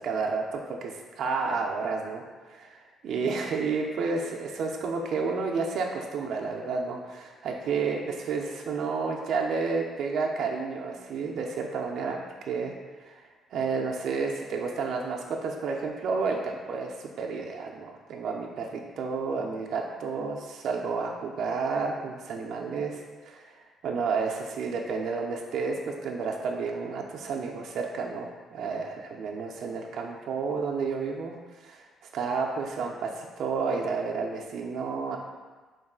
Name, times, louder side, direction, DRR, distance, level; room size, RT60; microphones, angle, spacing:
voice 1, 0.0-2.2 2.5-12.7 13.1-13.2 13.5-23.5 23.8-31.4 31.6-31.8 32.1-35.2, right 4 dB, 65° right, 0 dB, 0.4 m, -31 dB
3.7 x 3.5 x 2.3 m, 1.3 s
cardioid pair, 120°, 0 cm